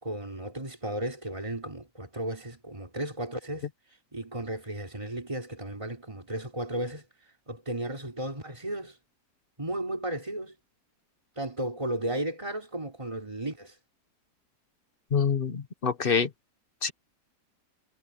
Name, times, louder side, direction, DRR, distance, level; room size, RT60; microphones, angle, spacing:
voice 1, 0.0-3.7 4.1-7.1 7.5-9.0 9.6-10.5 11.4-13.8, right 1 dB, 15° right, 4.2 m, -34 dB
voice 2, 15.1-16.3 16.8-16.9, left 6 dB, 35° left, 1.1 m, -26 dB
omnidirectional pair, 1.8 m